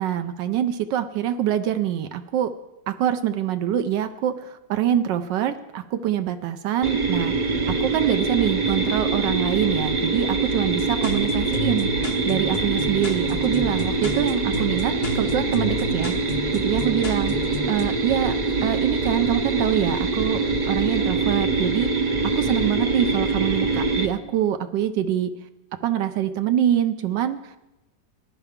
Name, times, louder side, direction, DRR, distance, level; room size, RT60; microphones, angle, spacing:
voice 1, 0.0-2.5 2.9-11.9 12.2-17.3 17.7-18.3 18.6-20.4 20.7-21.9 22.3-25.3 25.8-27.6, right 11 dB, 85° right, 8 dB, 1.3 m, -25 dB
sound 1, 6.8-24.1, right 3 dB, 45° right, 0.5 m, -24 dB
sound 2, 10.7-17.9, left 3 dB, 50° left, 0.7 m, -32 dB
19.5 x 10.5 x 3.6 m, 0.99 s
omnidirectional pair, 1.9 m